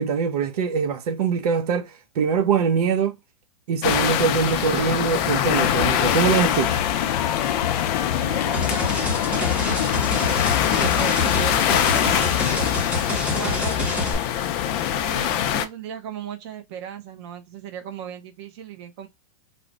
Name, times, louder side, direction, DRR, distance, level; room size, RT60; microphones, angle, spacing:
voice 1, 0.0-1.9 2.2-3.2 3.7-6.7, right 6 dB, 75° right, 0.7 m, -23 dB
sound 1, 3.8-15.6, left 10 dB, 35° left, 0.4 m, -24 dB
voice 2, 4.5-4.9 8.2-12.7 13.3-14.1 14.8-19.1, right 8 dB, 45° right, 0.7 m, -37 dB
sound 2, 5.5-12.6, left 10 dB, 85° left, 0.5 m, -27 dB
sound 3, 8.5-14.1, left 2 dB, 5° right, 0.8 m, -28 dB
3.2 x 2.1 x 3.7 m
supercardioid pair, 155°, 20 cm